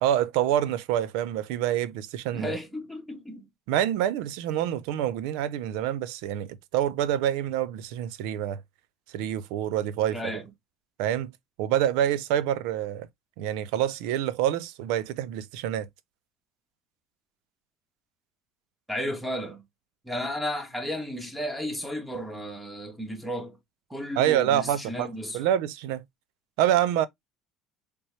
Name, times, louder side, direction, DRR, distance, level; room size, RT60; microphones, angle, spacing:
voice 1, 0.0-2.6 3.7-8.6 9.1-10.2 11.0-11.3 11.6-13.1 13.4-15.9 24.2-25.1 25.3-26.0 26.6-27.1, right 11 dB, 75° right, 0.5 m, -26 dB
voice 2, 2.3-3.5 10.1-10.5 18.9-19.6 20.0-23.6 23.9-25.4, equal, ahead, 1.7 m, -33 dB
4.3 x 3.4 x 2.8 m
supercardioid pair, 85°, 0 cm